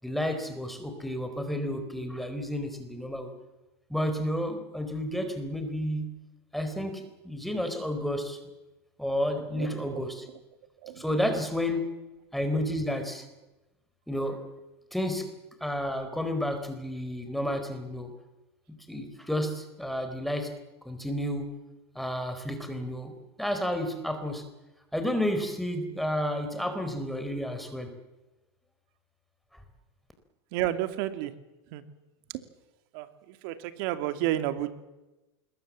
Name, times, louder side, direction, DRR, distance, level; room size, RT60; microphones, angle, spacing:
voice 1, 0.0-3.3 3.9-6.1 6.5-8.4 9.0-10.2 11.0-11.9 12.3-13.3 14.1-14.4 14.9-15.3 15.6-18.1 18.9-20.5 20.8-21.5 21.9-24.4 24.9-27.9, equal, ahead, 7 dB, 4.4 m, -31 dB
voice 2, 9.4-10.0 10.8-11.2 30.5-31.3 31.7-31.8 32.9-34.7, right 13 dB, 60° right, 9 dB, 2.5 m, -31 dB
26.0 x 22.0 x 7.6 m, 1.0 s
supercardioid pair, 125°, 14 cm